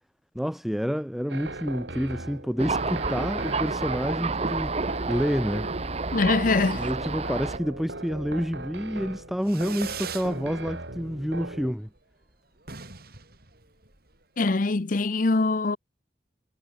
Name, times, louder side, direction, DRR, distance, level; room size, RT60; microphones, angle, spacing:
voice 1, 0.3-4.8 5.1-5.7 6.7-11.9, equal, ahead, 3.1 m, -28 dB
sound 1, 1.3-11.7, right 2 dB, 70° right, 3.9 m, -38 dB
Thunder, 2.6-7.6, right 3 dB, 35° right, 1.0 m, -30 dB
voice 2, 6.1-6.8 14.4-15.8, left 3 dB, 45° left, 0.7 m, -23 dB
Fireworks, 9.4-10.3 10.7-11.3 11.5-11.6 11.9-12.0 12.2-12.3 12.6-14.2, right 7 dB, 55° right, 4.9 m, -41 dB
head